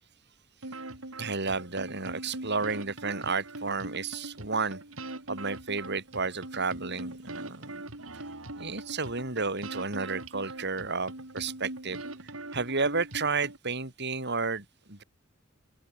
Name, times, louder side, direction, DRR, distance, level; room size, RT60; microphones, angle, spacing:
sound 1, 0.6-13.6, right 2 dB, 75° right, 3.8 m, -42 dB
voice 1, 1.2-4.8 5.3-7.8 8.1-8.2 8.6-12.0 12.5-15.0, right 4 dB, 55° right, 6.1 m, -32 dB
open air
head